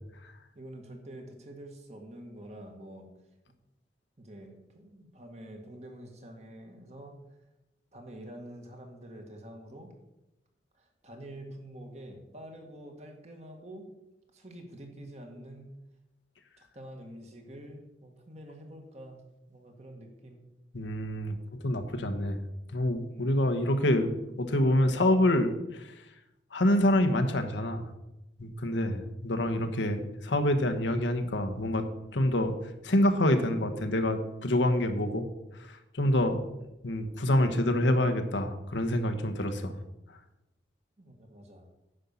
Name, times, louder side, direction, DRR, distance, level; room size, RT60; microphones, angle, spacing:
voice 1, 0.6-3.1 4.2-7.2 7.9-9.9 10.8-13.9 14.3-15.8 16.6-19.2 19.5-20.4 23.1-23.3 41.0-41.7, right 1 dB, 40° right, 3 dB, 1.7 m, -47 dB
voice 2, 20.7-21.4 21.6-22.4 22.7-25.9 26.5-27.8 28.4-31.9 32.1-32.5 32.8-35.3 35.9-36.4 36.8-39.7, left 1 dB, 90° left, 6 dB, 1.1 m, -26 dB
9.9 x 5.4 x 7.1 m, 0.95 s
head